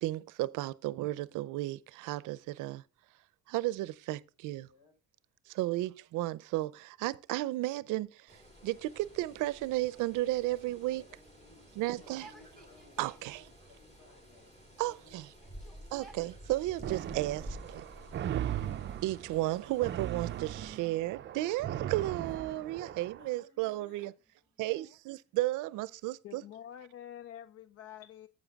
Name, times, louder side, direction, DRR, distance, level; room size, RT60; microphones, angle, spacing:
voice 1, 0.0-2.8 3.5-4.7 5.5-11.0 11.8-12.3 13.0-13.4 14.8-15.3 15.9-17.9 19.0-24.1 24.6-26.4, right 17 dB, 85° right, 0.6 m, -34 dB
sound 1, 8.3-20.8, equal, 25° left, 3.8 m, -52 dB
voice 2, 10.3-11.7 12.0-14.5 14.8-15.2 22.1-24.1, left 3 dB, 80° left, 6.0 m, -60 dB
Yell, 10.9-13.3 14.2-14.9 15.3-17.2 17.9-18.6 19.3-21.1 22.5-23.3 24.2-25.9, right 2 dB, ahead, 2.4 m, -61 dB
sound 2, 16.8-23.3, right 11 dB, 40° right, 0.5 m, -38 dB
voice 3, 26.2-28.3, left 10 dB, 50° left, 0.5 m, -47 dB
9.1 x 7.6 x 3.5 m
cardioid pair, 135°, 30 cm